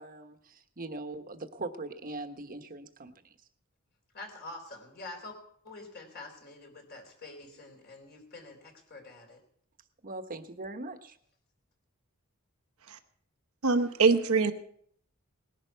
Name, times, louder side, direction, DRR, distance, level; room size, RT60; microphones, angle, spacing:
voice 1, 0.0-3.1 10.0-11.1, right 2 dB, 40° right, 7 dB, 1.2 m, -41 dB
voice 2, 4.1-5.4 5.6-9.4, left 2 dB, 50° left, 3 dB, 3.7 m, -46 dB
voice 3, 13.6-14.5, right 4 dB, 80° right, 8 dB, 1.1 m, -23 dB
19.0 x 11.0 x 4.6 m, 0.64 s
head